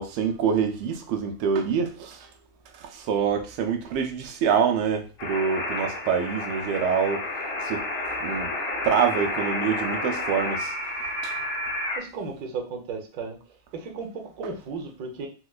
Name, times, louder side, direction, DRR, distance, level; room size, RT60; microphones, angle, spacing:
voice 1, 0.0-2.2 2.9-7.3 7.7-7.8 8.2-8.5 8.8-10.7 11.2-11.3, right 6 dB, 90° right, 4 dB, 1.5 m, -25 dB
sound 1, 5.2-12.0, left 2 dB, 60° left, 1.8 m, -30 dB
voice 2, 12.0-13.4 13.7-15.3, right 4 dB, 65° right, 1 dB, 1.0 m, -35 dB
4.6 x 2.2 x 2.3 m, 0.35 s
omnidirectional pair, 2.3 m